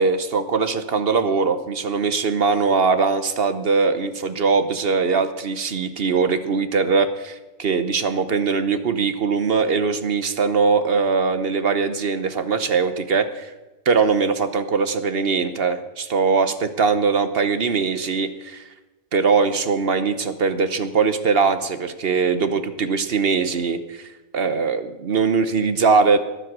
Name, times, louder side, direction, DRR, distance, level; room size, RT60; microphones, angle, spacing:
voice 1, 0.0-13.5 13.9-18.6 19.1-24.1 24.3-26.2, right 5 dB, 50° right, 11 dB, 0.9 m, -21 dB
21.0 x 7.7 x 6.0 m, 1.1 s
omnidirectional pair, 1.6 m